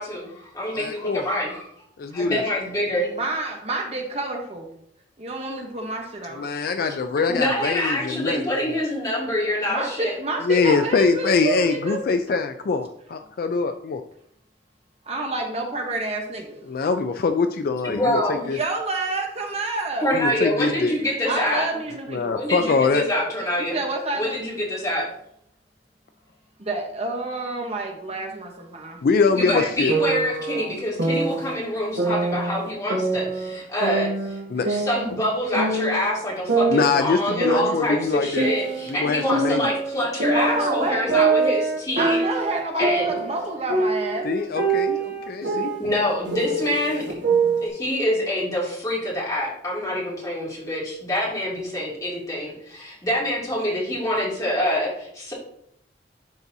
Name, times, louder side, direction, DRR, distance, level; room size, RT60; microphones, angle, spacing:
voice 1, 0.0-1.7 2.1-3.1 7.2-10.1 17.8-18.5 20.0-21.7 22.3-23.8 24.1-25.1 29.3-34.4 34.7-42.2 42.8-43.2 45.8-55.3, left 1 dB, 20° left, -6 dB, 2.6 m, -26 dB
voice 2, 0.7-1.2 2.0-2.4 6.3-8.8 10.4-14.0 16.7-18.6 20.1-20.9 22.1-23.1 29.0-29.9 31.1-31.2 34.5-34.7 36.7-38.5 38.9-39.7 44.2-45.7, left 4 dB, 55° left, 7 dB, 0.4 m, -23 dB
voice 3, 3.2-4.7 5.2-6.4 9.7-12.0 15.1-16.6 18.5-20.1 21.2-22.4 23.7-24.4 26.6-29.0 34.6-34.8 40.3-41.1 42.0-44.3, right 2 dB, 35° right, 2 dB, 1.0 m, -28 dB
sound 1, 29.9-31.5 32.0-33.5 33.8-36.1 36.5-38.9 39.3-43.4 43.7-47.7, right 4 dB, 75° right, 1.5 m, -24 dB
11.5 x 4.0 x 2.7 m, 0.71 s
head